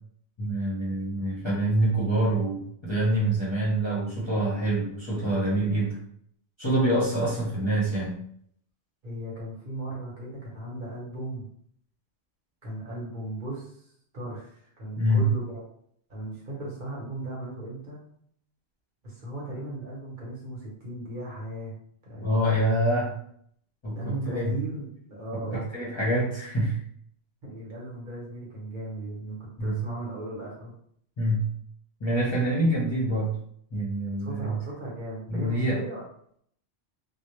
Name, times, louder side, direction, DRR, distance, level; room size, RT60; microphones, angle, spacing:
voice 1, 0.4-6.0 6.6-8.2 15.0-15.3 22.2-23.1 23.8-24.6 25.3-25.4 25.7-26.8 29.6-29.8 31.2-31.5 32.0-33.3 33.7-34.5 35.3-35.8, right 1 dB, 35° left, -7 dB, 0.6 m, -26 dB
voice 2, 9.0-11.5 12.6-13.9 14.1-15.6 16.1-18.0 19.0-21.7 22.0-22.5 23.9-25.6 27.4-30.7 34.2-36.0, right 1 dB, 50° right, -4 dB, 0.9 m, -37 dB
2.1 x 2.0 x 2.9 m, 0.66 s
omnidirectional pair, 1.1 m